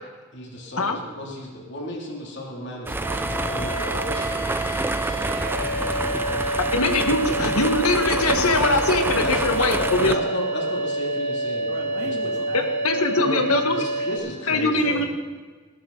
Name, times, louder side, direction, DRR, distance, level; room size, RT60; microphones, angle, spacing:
voice 1, 0.3-6.6 7.0-7.2 8.1-8.8 9.2-11.7 12.0-12.2 13.2-15.1, left 1 dB, 50° left, -1 dB, 2.8 m, -34 dB
sound 1, 2.9-10.2, right 2 dB, 10° right, 0.4 m, -28 dB
sound 2, 3.0-14.2, right 1 dB, 75° right, 4.9 m, -28 dB
voice 2, 6.7-10.2 12.8-13.7 14.5-15.0, left 2 dB, 85° left, 5 dB, 1.7 m, -22 dB
voice 3, 11.6-13.7 14.8-15.1, right 1 dB, 50° right, -1 dB, 2.9 m, -37 dB
19.0 x 14.0 x 4.0 m, 1.4 s
head